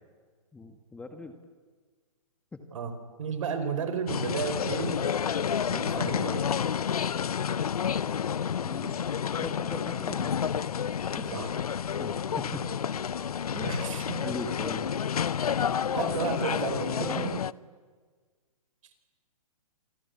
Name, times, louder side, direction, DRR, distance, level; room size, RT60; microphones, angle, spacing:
voice 1, 0.5-1.3 2.5-2.6 8.6-9.0 9.4-10.3 11.1-11.5 12.0-12.7 13.5-13.8 14.2-14.9 17.0-17.3, left 3 dB, 5° left, 6 dB, 1.6 m, -39 dB
voice 2, 2.7-5.0 5.7-6.6 11.3-11.5 13.6-14.2 15.6-17.3, right 6 dB, 60° right, 9 dB, 4.7 m, -33 dB
sound 1, 4.1-17.5, left 8 dB, 80° left, 0.7 m, -30 dB
27.0 x 23.0 x 8.3 m, 1.5 s
hypercardioid pair, 140°, 19 cm